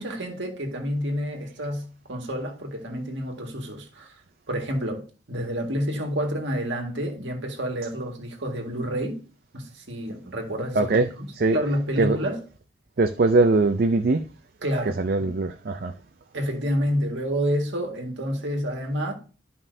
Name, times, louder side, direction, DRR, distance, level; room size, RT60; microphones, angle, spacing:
voice 1, 0.0-4.2 4.5-9.2 9.5-11.3 11.5-12.4 14.6-15.3 16.3-19.1, equal, 65° right, 1.9 m, -29 dB
voice 2, 10.7-11.1 11.3-11.6 12.0-12.2 13.0-14.2 15.0-15.9, right 3 dB, 50° right, 0.4 m, -21 dB
13.0 x 5.4 x 2.7 m
head